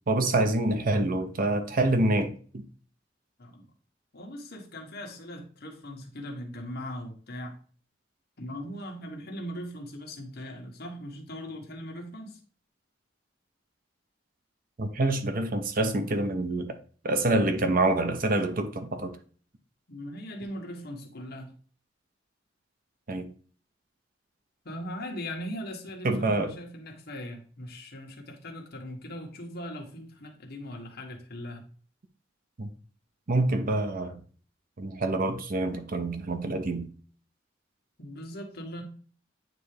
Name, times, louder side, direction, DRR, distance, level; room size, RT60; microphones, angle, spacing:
voice 1, 0.1-2.6 14.8-16.8 17.0-19.1 23.1-23.3 26.0-26.5 32.6-32.7 33.3-34.2 34.8-36.9, right 2 dB, 50° right, 0.8 m, -26 dB
voice 2, 4.1-7.6 8.4-12.4 19.9-21.5 24.6-31.7 38.0-38.8, equal, 60° left, 1.4 m, -39 dB
9.0 x 3.3 x 3.3 m
head